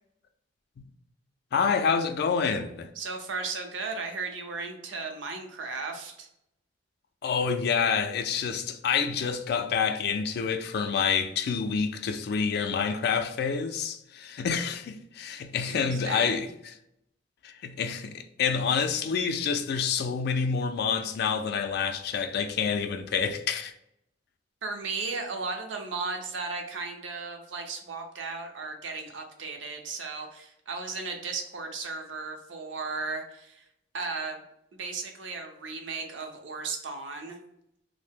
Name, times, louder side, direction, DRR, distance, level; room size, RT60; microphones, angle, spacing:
voice 1, 1.5-2.9 7.2-16.7 17.4-23.7, left 6 dB, 60° left, 0.3 m, -28 dB
voice 2, 3.0-6.3 15.7-16.5 24.6-33.6 33.9-34.4 34.7-37.4, right 4 dB, 80° right, 0.6 m, -35 dB
2.7 x 2.0 x 3.4 m
head